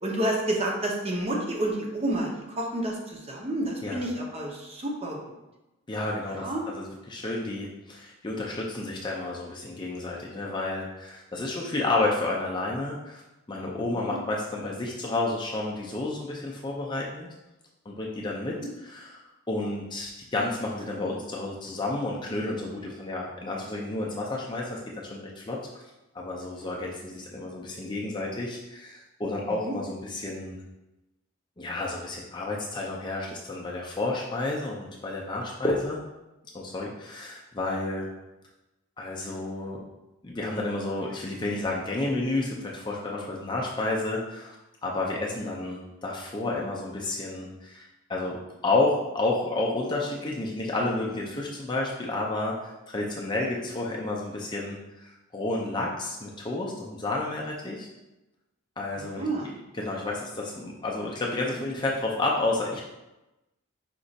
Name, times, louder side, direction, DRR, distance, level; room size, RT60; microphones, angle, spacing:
voice 1, 0.0-5.4 6.4-6.6 18.6-18.7 29.5-29.7 59.0-59.5, right 1 dB, 25° right, -1 dB, 0.6 m, -30 dB
voice 2, 5.9-13.2 13.5-17.3 17.9-19.2 19.5-25.6 26.1-30.6 31.6-36.0 36.5-38.1 39.0-39.8 40.2-44.6 44.8-48.4 48.6-57.9 58.8-59.3 59.7-62.8, left 2 dB, 20° left, -2 dB, 0.4 m, -31 dB
5.1 x 2.4 x 3.9 m, 1.0 s
head